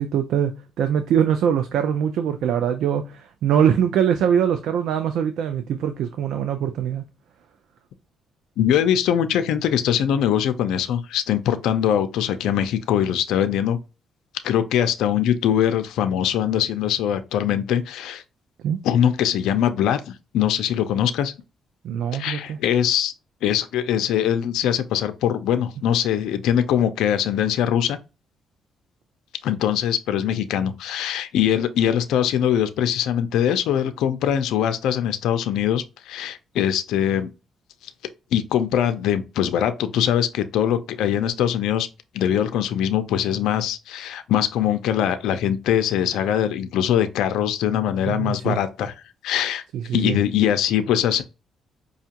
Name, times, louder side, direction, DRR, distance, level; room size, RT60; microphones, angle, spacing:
voice 1, 0.0-7.0 18.6-18.8 21.8-22.6 48.1-48.6 49.7-50.2, right 8 dB, 80° right, 0.4 m, -23 dB
voice 2, 8.6-13.8 14.4-18.2 18.8-21.3 22.1-23.1 23.4-28.0 29.4-37.3 38.3-41.9 42.1-48.9 49.2-49.6 49.9-51.2, left 10 dB, 85° left, 0.4 m, -22 dB
5.1 x 2.4 x 2.8 m
cardioid pair, 90°, 0 cm